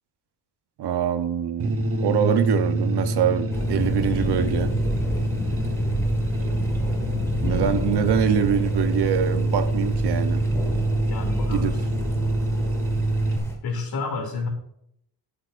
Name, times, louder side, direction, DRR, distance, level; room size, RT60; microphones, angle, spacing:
voice 1, 0.8-4.7 7.4-10.4 11.5-11.7, right 8 dB, 65° right, 0.9 m, -24 dB
sound 1, 1.6-13.4, right 1 dB, 30° right, 1.1 m, -25 dB
Thunder, 3.5-13.5, equal, 5° left, 1.8 m, -30 dB
voice 2, 11.0-11.8 13.6-14.5, left 4 dB, 60° left, 2.6 m, -30 dB
13.0 x 8.2 x 2.5 m
wide cardioid pair, 165°, 42 cm